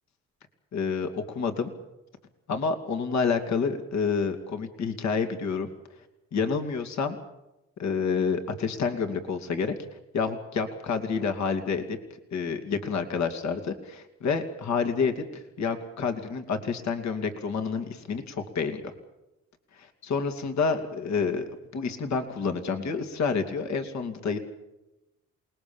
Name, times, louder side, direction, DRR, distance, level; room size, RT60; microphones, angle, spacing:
voice 1, 0.7-1.7 2.5-5.7 6.3-7.2 7.8-9.9 10.1-12.0 12.3-18.9 19.7-24.4, left 5 dB, 65° left, 6 dB, 2.7 m, -29 dB
28.0 x 20.0 x 7.2 m, 0.96 s
cardioid pair, 90°, 30 cm